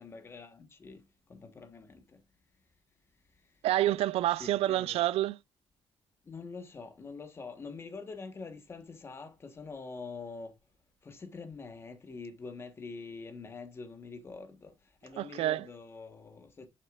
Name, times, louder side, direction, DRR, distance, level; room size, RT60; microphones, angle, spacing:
voice 1, 0.0-2.2 4.3-5.0 6.2-10.5 11.0-14.7 15.0-16.7, left 4 dB, 25° left, 1.3 m, -45 dB
voice 2, 3.6-5.4 15.2-15.7, right 14 dB, 80° right, 0.4 m, -28 dB
11.0 x 6.6 x 2.4 m
cardioid pair, 175°, 10 cm